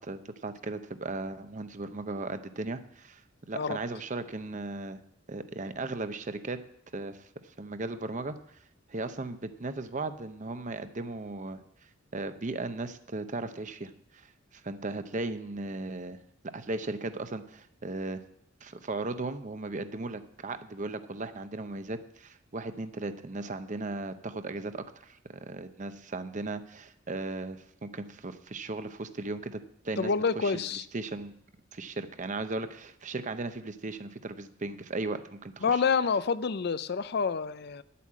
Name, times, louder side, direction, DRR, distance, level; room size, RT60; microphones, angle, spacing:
voice 1, 0.0-3.2 3.5-5.0 5.3-6.6 6.9-7.2 7.6-8.4 8.9-11.6 12.1-16.2 16.4-18.2 18.6-31.3 31.7-35.8, right 2 dB, 40° right, 10 dB, 0.7 m, -37 dB
voice 2, 30.0-30.9 35.6-37.8, left 5 dB, 55° left, 15 dB, 0.5 m, -28 dB
10.0 x 8.4 x 7.4 m, 0.73 s
head